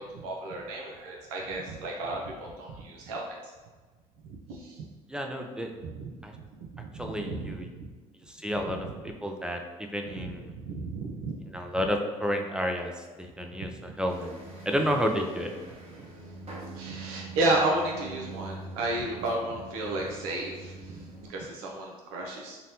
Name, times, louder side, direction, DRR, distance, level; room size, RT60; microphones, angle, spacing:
voice 1, 0.0-3.5 4.2-4.9 5.8-6.5 6.7-7.9 8.5-8.9 10.2-11.4 11.7-11.9 13.6-13.9 16.0-16.1 16.7-22.6, right 2 dB, 75° right, -1 dB, 0.5 m, -33 dB
voice 2, 5.1-5.7 6.2-6.3 7.0-7.7 8.3-8.8 9.0-10.5 11.5-12.9 13.2-14.4 14.7-15.5, equal, 5° right, 3 dB, 0.4 m, -30 dB
sound 1, 14.1-21.3, right 3 dB, 35° right, 1.0 m, -44 dB
3.9 x 2.1 x 2.7 m, 1.3 s
hypercardioid pair, 60°, 18 cm